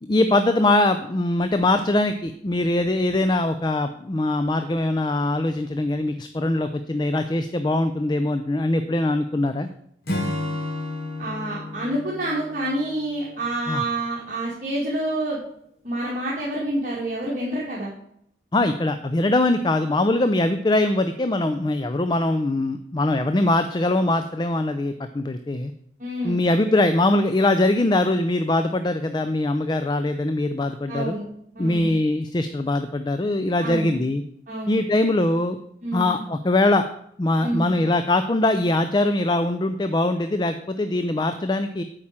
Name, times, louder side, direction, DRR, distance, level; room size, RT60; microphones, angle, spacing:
voice 1, 0.0-9.7 13.7-13.8 18.5-25.7 26.2-31.1 31.6-34.2 34.7-35.6 35.9-36.8 37.2-41.8, left 2 dB, 25° left, 10 dB, 0.4 m, -22 dB
Acoustic guitar / Strum, 10.1-13.5, left 2 dB, 60° left, 2.0 m, -31 dB
voice 2, 11.2-15.4 15.8-17.9 26.0-26.5 30.9-31.3 31.5-31.9 33.6-33.9 34.5-34.8 35.8-36.1 37.4-37.7, right 1 dB, 45° right, -7 dB, 2.1 m, -28 dB
8.5 x 4.9 x 7.3 m, 0.71 s
head